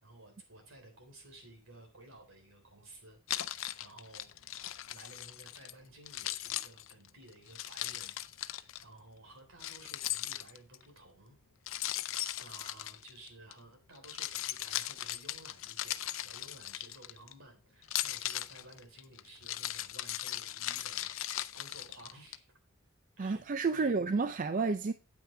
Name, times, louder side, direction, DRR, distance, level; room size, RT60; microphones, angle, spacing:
voice 1, 0.0-4.3 4.9-11.4 12.4-22.5 23.2-24.0, right 1 dB, 70° right, 3.7 m, -55 dB
Keys jangling, 3.3-5.7 6.1-8.8 9.6-10.8 11.7-13.5 14.0-17.3 17.8-22.4, left 13 dB, 65° left, 0.5 m, -38 dB
voice 2, 23.2-24.9, right 4 dB, 40° right, 0.4 m, -30 dB
9.0 x 8.9 x 3.3 m
head